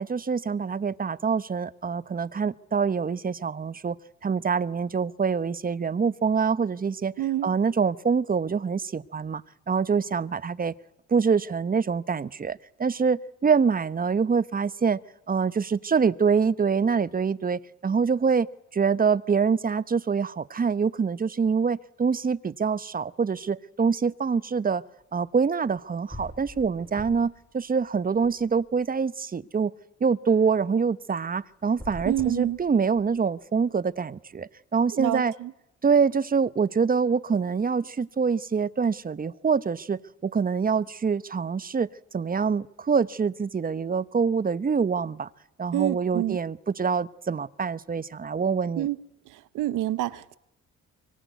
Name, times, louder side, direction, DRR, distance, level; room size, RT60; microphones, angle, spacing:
voice 1, 0.0-4.0 4.2-7.1 7.4-10.7 11.1-15.0 15.3-18.5 18.7-24.8 25.1-29.7 30.0-35.3 35.8-41.9 42.1-45.3 45.6-48.9, right 5 dB, 30° right, 0.9 m, -25 dB
voice 2, 7.2-7.5 32.1-32.6 34.9-35.5 45.7-46.4 48.8-49.0 49.5-50.4, right 14 dB, 90° right, 1.1 m, -27 dB
sound 1, 25.7-25.8 26.1-27.4 27.8-28.9 31.6-33.2, equal, 10° left, 4.3 m, -43 dB
24.5 x 23.5 x 9.4 m
cardioid pair, 90°, 30 cm